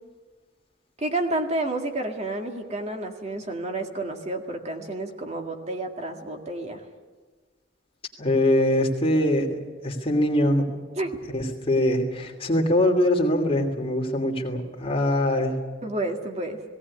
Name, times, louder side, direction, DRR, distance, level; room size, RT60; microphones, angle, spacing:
voice 1, 1.0-6.8 11.0-11.1 15.8-16.6, right 2 dB, 35° right, 4 dB, 1.9 m, -30 dB
voice 2, 8.2-10.6 11.3-15.6, left 1 dB, 30° left, 2 dB, 2.9 m, -23 dB
18.5 x 18.0 x 9.8 m, 1.4 s
head